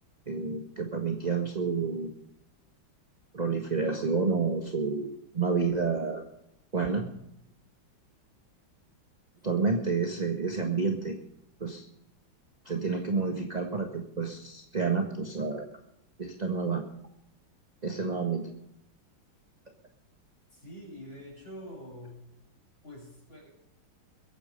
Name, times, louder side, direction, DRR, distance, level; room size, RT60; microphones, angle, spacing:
voice 1, 0.3-2.1 3.3-6.2 6.7-7.1 9.4-11.2 11.6-11.8 12.6-15.7 16.2-16.8 17.8-18.4, right 4 dB, 20° right, 4 dB, 1.4 m, -29 dB
voice 2, 20.5-22.2 22.8-23.5, equal, 25° left, -3 dB, 7.6 m, -45 dB
22.5 x 9.4 x 5.3 m, 0.82 s
omnidirectional pair, 2.3 m